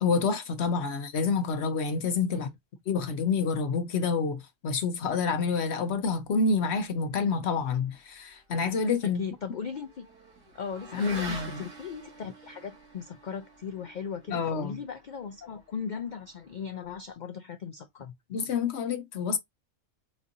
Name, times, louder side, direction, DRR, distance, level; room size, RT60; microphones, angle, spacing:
voice 1, 0.0-2.5 2.9-9.2 10.9-11.6 14.3-14.7 18.3-19.4, left 5 dB, 60° left, 0.8 m, -28 dB
Motorcycle / Accelerating revving vroom, 8.2-16.9, right 2 dB, 70° right, 2.2 m, -47 dB
voice 2, 9.0-10.1 10.5-18.1, left 6 dB, 80° left, 0.4 m, -38 dB
4.3 x 2.6 x 2.6 m
omnidirectional pair, 1.4 m